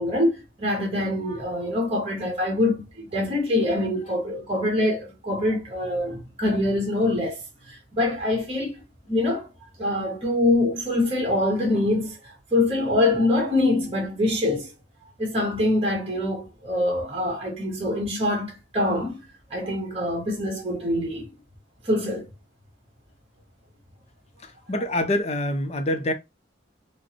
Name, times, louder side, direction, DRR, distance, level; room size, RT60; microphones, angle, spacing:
voice 1, 0.0-7.4 7.7-8.8 9.1-9.5 9.8-14.7 15.2-19.2 19.5-21.3 21.8-22.3, left 1 dB, 35° right, 1.5 m, -24 dB
voice 2, 24.4-26.1, left 1 dB, 35° left, 0.6 m, -26 dB
4.9 x 2.2 x 2.9 m
head